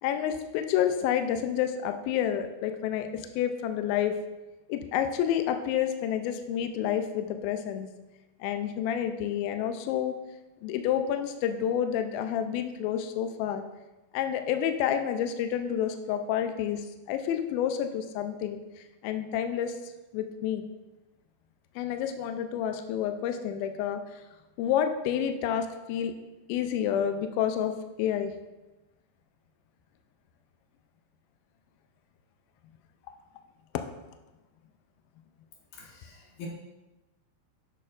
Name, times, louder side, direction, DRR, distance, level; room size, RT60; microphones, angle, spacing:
voice 1, 0.0-4.2 4.7-7.9 8.4-10.2 10.6-13.6 14.1-19.8 20.1-20.7 21.8-24.0 24.6-26.1 26.5-28.3, left 9 dB, 90° left, 7 dB, 2.1 m, -29 dB
voice 2, 35.7-36.5, left 4 dB, 70° left, -3 dB, 3.4 m, -45 dB
11.0 x 6.3 x 2.5 m, 1.1 s
omnidirectional pair, 4.9 m